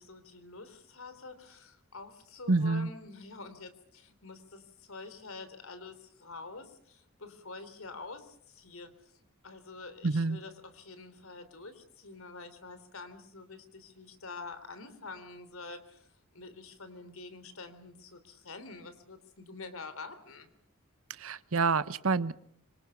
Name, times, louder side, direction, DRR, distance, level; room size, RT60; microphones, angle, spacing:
voice 1, 0.0-16.1 16.3-20.5, left 3 dB, 70° left, 10 dB, 3.5 m, -47 dB
voice 2, 2.5-2.9 10.0-10.4 21.2-22.3, right 3 dB, 70° right, 16 dB, 1.0 m, -27 dB
25.5 x 25.0 x 7.0 m, 0.64 s
head